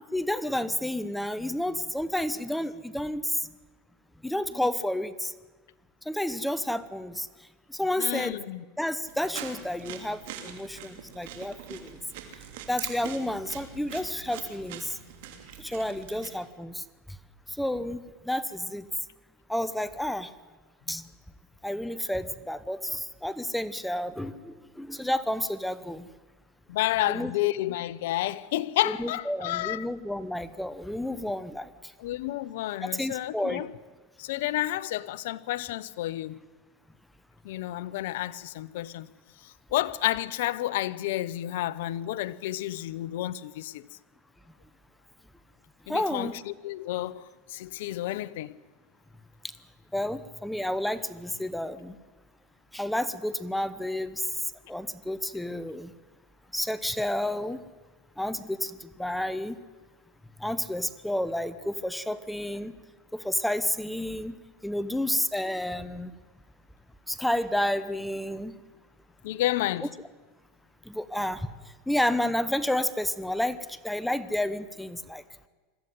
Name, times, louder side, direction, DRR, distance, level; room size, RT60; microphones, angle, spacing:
voice 1, 0.1-3.5 4.2-5.3 6.0-8.4 8.8-12.0 12.7-15.0 15.6-16.8 17.5-18.9 19.5-20.3 20.9-21.1 21.6-26.1 27.0-27.3 28.8-31.9 32.8-33.6 45.9-46.4 49.4-49.5 49.9-52.0 52.7-54.4 54.7-55.9 56.5-57.6 58.2-59.6 60.4-62.8 63.1-64.4 64.6-66.1 67.1-68.6 70.8-71.5 71.9-75.2, left 1 dB, 5° left, 0.9 m, -30 dB
voice 2, 8.0-8.6 26.7-29.9 32.0-33.7 34.2-36.4 37.4-39.1 39.7-43.9 45.9-47.2 47.5-48.6 69.2-69.9, left 15 dB, 75° left, 0.8 m, -30 dB
sound 1, 9.1-16.3, right 9 dB, 70° right, 2.9 m, -43 dB
21.5 x 14.5 x 9.5 m
supercardioid pair, 120°, 0 cm